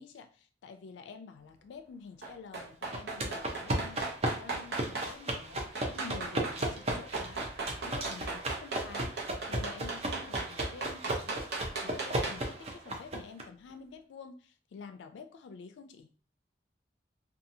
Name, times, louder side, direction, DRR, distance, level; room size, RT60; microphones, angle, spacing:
voice 1, 0.0-7.5 7.8-9.2 9.5-11.5 11.8-16.1, left 5 dB, 85° left, 8 dB, 0.3 m, -48 dB
sound 1, 2.2-5.1 5.7-6.6 6.9-12.5 12.8-12.9, right 3 dB, 65° right, 0.8 m, -37 dB
sound 2, 2.9-13.4, right 1 dB, 35° right, 0.5 m, -35 dB
2.7 x 2.3 x 2.6 m, 0.40 s
head